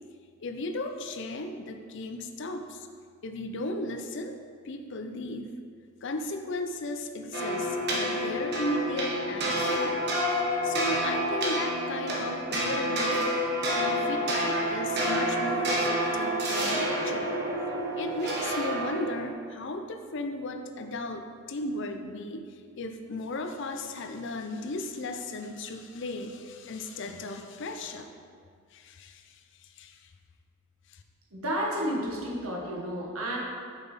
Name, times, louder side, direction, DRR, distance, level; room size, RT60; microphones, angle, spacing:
voice 1, 0.4-2.9 3.2-4.4 4.6-5.6 6.0-10.0 10.5-13.3 13.7-17.3 17.9-28.1 28.7-30.1 30.9-31.0, left 2 dB, 55° left, 6 dB, 0.5 m, -36 dB
sound 1, 7.3-19.3, equal, 50° right, 1.2 m, -28 dB
voice 2, 31.3-33.4, equal, 80° right, -3 dB, 1.5 m, -31 dB
6.8 x 5.8 x 4.1 m, 2.1 s
head